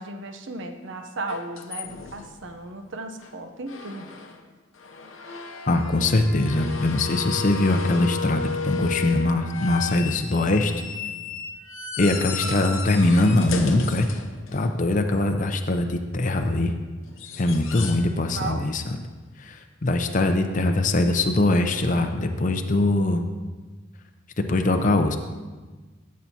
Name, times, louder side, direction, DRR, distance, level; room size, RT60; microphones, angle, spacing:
voice 1, 0.0-4.2 12.4-12.7 15.0-15.2 18.3-18.7, right 2 dB, 65° right, 6 dB, 0.7 m, -35 dB
sound 1, 1.3-2.6 3.2-3.3 3.7-4.4 4.7-15.0 17.1-18.1 18.4-18.7 20.5-20.6, left 5 dB, 80° left, 0.7 m, -34 dB
voice 2, 5.6-10.7 12.0-14.1 14.5-16.7 17.4-18.8 19.4-23.2 24.4-25.2, left 2 dB, 40° left, 5 dB, 0.5 m, -22 dB
13.5 x 7.3 x 2.8 m, 1.3 s
head